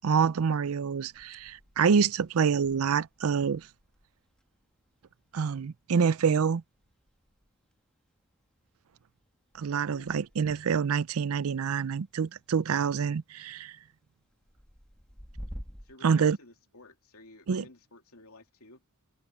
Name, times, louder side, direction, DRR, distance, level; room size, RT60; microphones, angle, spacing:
voice 1, 0.0-3.7 5.3-6.6 9.6-13.7 16.0-16.4 17.5-17.6, right 6 dB, 70° right, 0.5 m, -26 dB
sound 1, 1.1-16.0, equal, 5° left, 1.3 m, -52 dB
voice 2, 9.9-10.3 15.8-18.8, left 2 dB, 80° left, 3.0 m, -53 dB
head